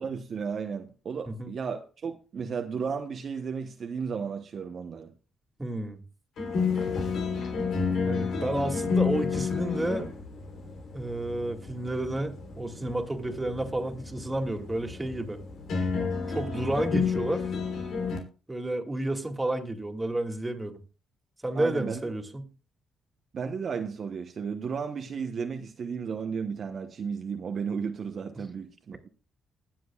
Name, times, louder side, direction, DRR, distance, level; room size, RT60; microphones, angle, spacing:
voice 1, 0.0-5.1 21.5-22.1 23.3-29.1, right 6 dB, 55° right, 1.0 m, -34 dB
voice 2, 5.6-6.0 8.0-10.1 10.9-15.4 16.3-17.4 18.5-20.8 21.4-22.4, right 1 dB, 15° right, 2.4 m, -31 dB
sound 1, 6.4-18.2, left 5 dB, 70° left, 3.4 m, -31 dB
20.5 x 7.7 x 2.4 m
supercardioid pair, 65°, 0 cm